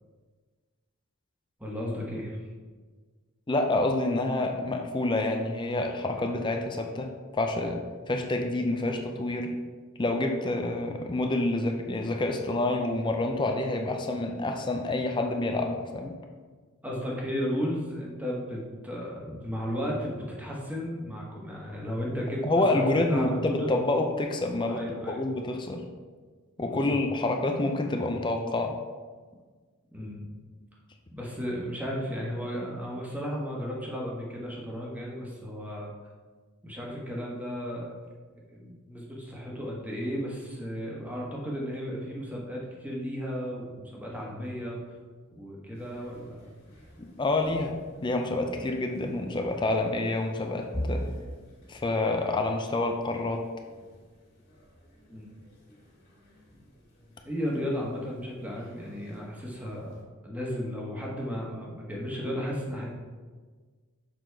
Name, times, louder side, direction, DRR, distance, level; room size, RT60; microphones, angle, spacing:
voice 1, 1.6-2.4 16.8-23.7 24.7-25.2 26.6-27.0 29.9-30.2 31.1-35.9 36.6-37.9 38.5-45.0 45.3-46.5 55.1-55.3 57.2-59.9 60.2-62.9, equal, 5° right, -3 dB, 1.1 m, -34 dB
voice 2, 3.5-9.5 10.0-16.1 22.4-25.8 26.6-28.7 47.0-51.1 51.7-53.4, left 2 dB, 20° left, 4 dB, 0.5 m, -28 dB
sound 1, 45.7-60.0, equal, 45° left, 2.0 m, -44 dB
6.7 x 4.0 x 4.6 m, 1.5 s
head